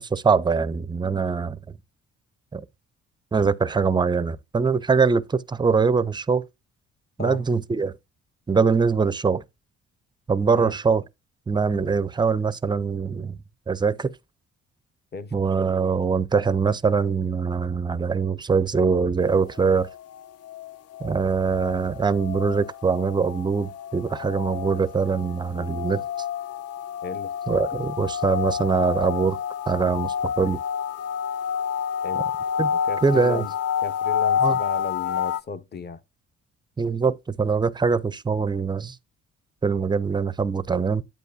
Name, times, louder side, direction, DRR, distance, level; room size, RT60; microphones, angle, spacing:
voice 1, 0.0-1.6 2.5-2.6 3.3-6.4 7.2-7.9 8.5-9.4 10.3-11.0 11.5-13.4 13.7-14.1 15.3-19.9 21.0-26.0 27.5-29.4 29.7-30.6 32.6-32.7 33.0-33.4 34.4-34.6 36.8-39.0 39.6-41.0, right 5 dB, 15° right, 0.4 m, -23 dB
sound 1, 19.2-35.4, left 8 dB, 55° left, 0.4 m, -29 dB
voice 2, 27.0-27.3 32.0-32.3 32.7-33.5 33.8-36.0, left 4 dB, 35° left, 0.8 m, -34 dB
8.9 x 8.2 x 2.3 m
cardioid pair, 90°, 30 cm